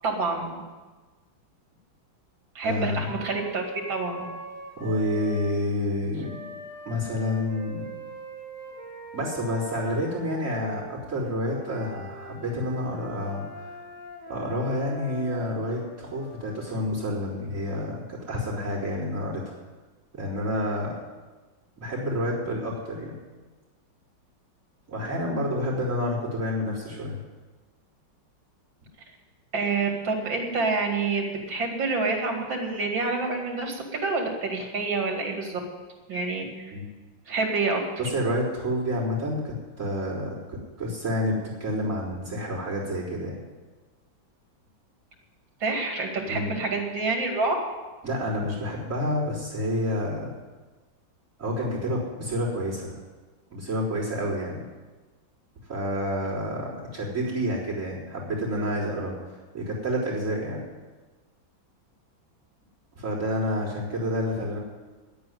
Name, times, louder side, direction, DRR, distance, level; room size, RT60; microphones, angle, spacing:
voice 1, 0.0-0.6 2.5-4.3 29.5-35.6 36.1-36.7 37.3-37.8 45.6-47.5, right 3 dB, 75° right, 2 dB, 3.0 m, -27 dB
voice 2, 2.6-3.1 4.8-6.4 6.8-7.9 9.1-13.7 14.3-19.6 20.1-21.0 21.8-23.1 24.9-27.2 36.7-36.9 38.0-43.4 46.3-46.6 48.0-50.3 51.4-53.0 53.5-54.7 55.7-60.6 62.9-64.6, left 1 dB, 40° right, -7 dB, 4.3 m, -29 dB
Wind instrument woodwind instrument, 3.1-5.6 6.2-10.9 11.5-16.9, right 1 dB, 10° right, 2.9 m, -42 dB
10.5 x 8.9 x 9.4 m, 1.3 s
omnidirectional pair, 2.1 m